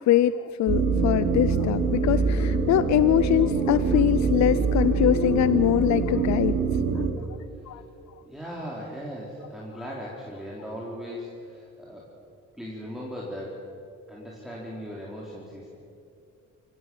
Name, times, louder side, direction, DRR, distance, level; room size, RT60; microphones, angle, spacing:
voice 1, 0.1-6.6 7.7-7.8, left 12 dB, 65° left, 15 dB, 0.6 m, -23 dB
sound 1, 0.7-7.1, right 5 dB, 55° right, 4.4 m, -24 dB
voice 2, 8.2-12.1 12.6-13.7 14.1-15.8, equal, ahead, -5 dB, 4.0 m, -38 dB
24.5 x 17.0 x 7.2 m, 2.5 s
cardioid pair, 90°, 30 cm